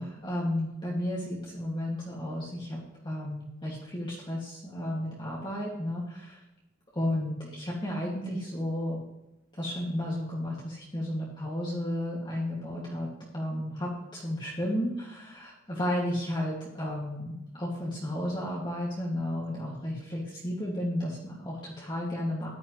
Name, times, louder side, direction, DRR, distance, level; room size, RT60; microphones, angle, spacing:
voice 1, 0.0-6.4 6.9-9.0 9.6-13.1 13.3-22.5, left 1 dB, 25° left, -5 dB, 2.2 m, -33 dB
14.5 x 11.0 x 3.2 m, 0.94 s
head